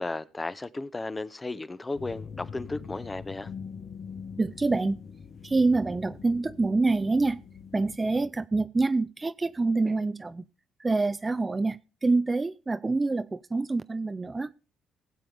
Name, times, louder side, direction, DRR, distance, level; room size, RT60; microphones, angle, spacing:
voice 1, 0.0-3.5, left 2 dB, 20° left, 0.8 m, -34 dB
sound 1, 1.9-8.0, left 6 dB, 50° left, 1.1 m, -43 dB
voice 2, 4.4-5.0 5.4-7.4 7.7-10.4 10.8-14.5, right 3 dB, 25° right, 0.5 m, -26 dB
19.5 x 7.7 x 3.4 m
supercardioid pair, 80°, 0 cm